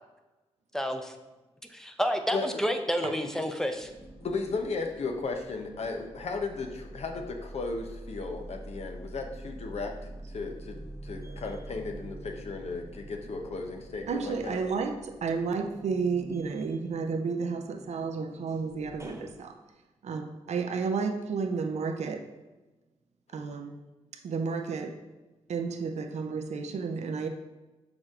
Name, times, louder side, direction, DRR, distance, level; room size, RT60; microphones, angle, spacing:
voice 1, 0.7-1.1 1.7-3.9, equal, 5° left, 6 dB, 0.8 m, -30 dB
sound 1, 2.2-3.0 3.4-19.3, right 1 dB, 25° right, 1.0 m, -46 dB
voice 2, 4.2-9.9 10.3-14.6, left 4 dB, 60° left, 3 dB, 1.0 m, -35 dB
voice 3, 14.1-19.6 20.0-22.3 23.3-23.8 24.2-25.0 25.5-27.3, right 5 dB, 65° right, 5 dB, 0.6 m, -32 dB
6.2 x 4.9 x 3.7 m, 1.1 s
supercardioid pair, 50°, 12 cm